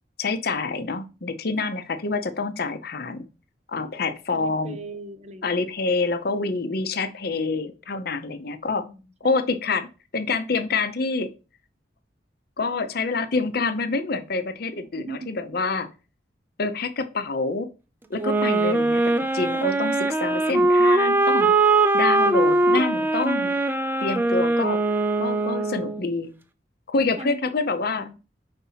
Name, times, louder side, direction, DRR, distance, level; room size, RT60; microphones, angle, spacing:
voice 1, 0.2-3.3 3.7-4.8 5.4-8.9 9.2-9.9 10.1-11.3 12.6-15.9 16.6-17.7 18.1-21.5 21.9-23.6 24.0-24.8 25.2-26.3 26.9-28.1, left 3 dB, 55° left, 0.7 m, -27 dB
voice 2, 4.3-5.6 8.7-9.3 14.9-15.6 27.2-27.5 27.8-28.2, right 2 dB, 35° right, 0.8 m, -40 dB
sound 1, 18.2-26.0, right 2 dB, 10° right, 0.5 m, -21 dB
5.2 x 4.1 x 5.6 m
head